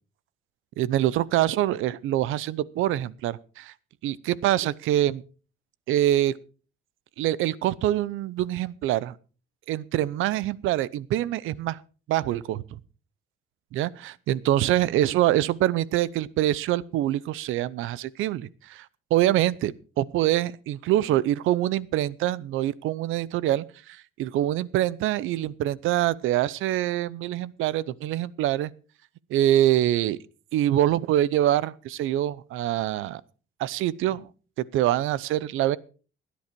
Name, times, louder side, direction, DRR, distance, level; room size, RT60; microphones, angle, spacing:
voice 1, 0.8-3.7 4.0-5.2 5.9-6.3 7.2-9.2 9.7-11.8 12.1-12.8 13.7-18.9 19.1-28.7 29.3-30.2 30.5-33.2 33.6-34.3 34.7-35.8, right 13 dB, 90° right, 21 dB, 0.7 m, -25 dB
17.0 x 10.5 x 4.6 m, 0.37 s
cardioid pair, 90°, 20 cm